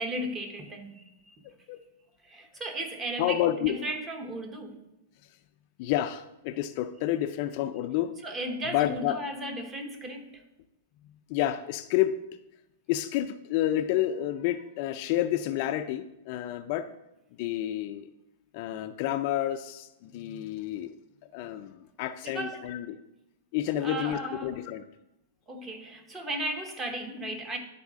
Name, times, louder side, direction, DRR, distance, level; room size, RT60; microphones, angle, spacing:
voice 1, 0.0-1.4 2.2-4.8 8.2-10.4 22.2-22.6 23.8-24.6 25.5-27.6, right 1 dB, 15° right, 5 dB, 0.9 m, -35 dB
voice 2, 3.2-3.8 5.8-8.1 8.7-9.2 11.3-12.2 12.9-16.9 17.4-18.1 18.5-20.9 21.3-23.0 23.5-24.8, left 12 dB, 45° left, 9 dB, 0.3 m, -29 dB
10.5 x 4.1 x 3.6 m, 0.91 s
hypercardioid pair, 145°, 0 cm